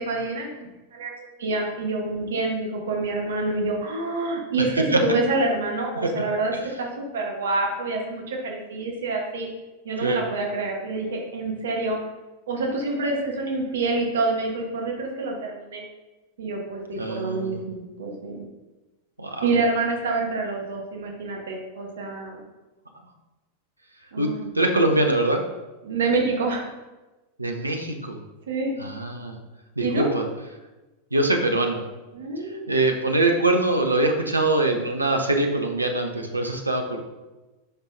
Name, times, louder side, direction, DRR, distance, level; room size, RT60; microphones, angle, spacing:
voice 1, 0.0-6.5 6.8-9.5 9.8-12.0 12.5-15.8 16.4-18.4 19.4-22.4 24.1-24.6 25.8-26.7 28.5-28.8 29.8-30.1 32.1-32.7, right 3 dB, 60° right, 1 dB, 1.2 m, -27 dB
voice 2, 4.6-5.0 10.0-10.2 17.0-17.6 19.2-19.5 24.2-25.4 27.4-28.2 28.8-29.4 29.8-30.2 31.1-31.8 32.4-37.0, right 2 dB, 80° right, 3 dB, 0.7 m, -23 dB
7.9 x 5.5 x 2.6 m, 1.1 s
figure-of-eight pair, 90°, 0 cm